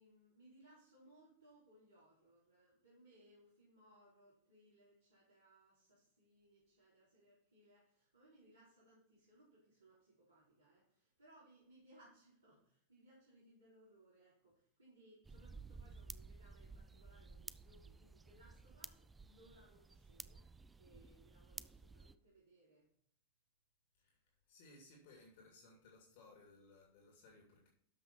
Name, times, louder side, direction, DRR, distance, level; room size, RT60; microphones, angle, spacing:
voice 1, 0.0-22.9, right 1 dB, 80° right, -9 dB, 4.2 m, -67 dB
sound 1, 15.2-22.1, right 4 dB, 10° right, 0.4 m, -54 dB
voice 2, 24.5-27.7, left 2 dB, 50° left, 0 dB, 2.5 m, -62 dB
12.5 x 5.8 x 4.4 m, 0.66 s
figure-of-eight pair, 90°, 0 cm